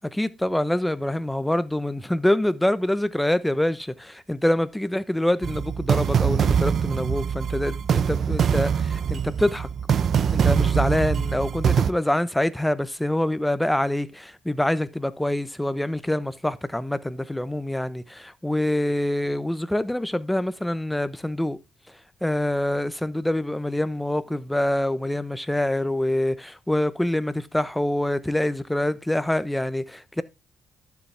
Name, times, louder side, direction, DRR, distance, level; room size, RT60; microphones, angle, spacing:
voice 1, 0.1-9.7 10.3-21.6 22.2-30.2, left 1 dB, 5° left, 0.9 m, -25 dB
sound 1, 5.4-11.9, right 7 dB, 55° right, 0.7 m, -23 dB
11.5 x 7.2 x 3.4 m
cardioid pair, 90°, 0 cm